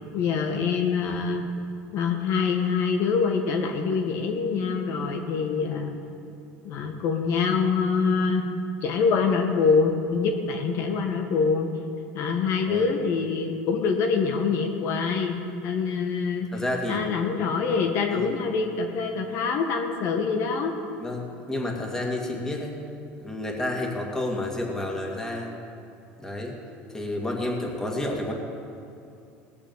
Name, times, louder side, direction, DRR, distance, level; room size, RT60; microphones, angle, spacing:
voice 1, 0.1-1.4 1.9-6.0 6.6-8.4 8.8-11.7 12.1-16.5 16.9-20.7, left 5 dB, 60° left, 3 dB, 1.3 m, -25 dB
voice 2, 16.5-17.0 18.1-18.4 21.0-22.8 23.2-25.5 26.2-26.5 26.9-28.3, left 1 dB, 10° left, -1 dB, 2.4 m, -30 dB
18.5 x 7.0 x 7.3 m, 2.6 s
supercardioid pair, 115°, 5 cm